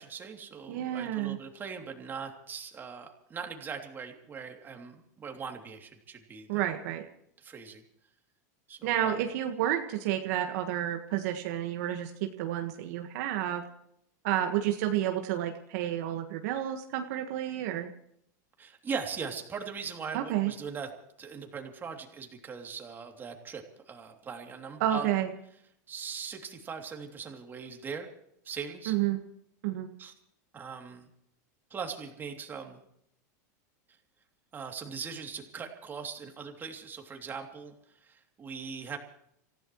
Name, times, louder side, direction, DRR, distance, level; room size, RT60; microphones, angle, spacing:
voice 1, 0.0-6.7 7.4-7.8 8.7-9.2 18.6-20.9 21.2-25.1 25.9-28.1 28.4-28.9 30.0-30.1 30.5-31.1 31.7-32.8 34.5-37.7 38.0-39.0, right 6 dB, 20° right, 3 dB, 3.0 m, -40 dB
voice 2, 0.7-1.4 6.5-7.1 8.8-13.6 14.2-17.9 20.1-20.5 24.8-25.3 28.9-29.2 29.6-29.9, right 12 dB, 60° right, 5 dB, 1.6 m, -30 dB
27.5 x 15.5 x 3.2 m, 0.72 s
supercardioid pair, 135°, 10 cm